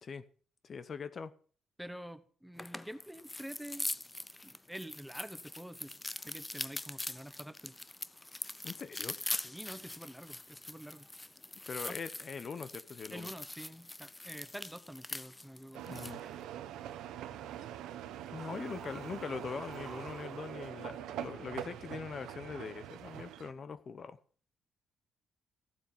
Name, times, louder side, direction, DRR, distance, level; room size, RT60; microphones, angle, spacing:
voice 1, 0.6-1.3 8.6-9.2 11.7-13.3 15.9-16.2 18.3-24.2, left 5 dB, 45° left, 0.9 m, -42 dB
voice 2, 1.8-3.9 4.4-5.9 6.2-7.7 9.4-11.1 11.9-12.0 13.1-15.8, equal, 5° right, 0.9 m, -47 dB
sound 1, 2.6-16.2, left 2 dB, 15° left, 0.6 m, -43 dB
sound 2, 15.7-23.5, right 11 dB, 90° right, 1.0 m, -44 dB
sound 3, 18.4-20.6, right 5 dB, 45° right, 1.9 m, -51 dB
14.5 x 7.3 x 5.5 m
cardioid pair, 90°, 0 cm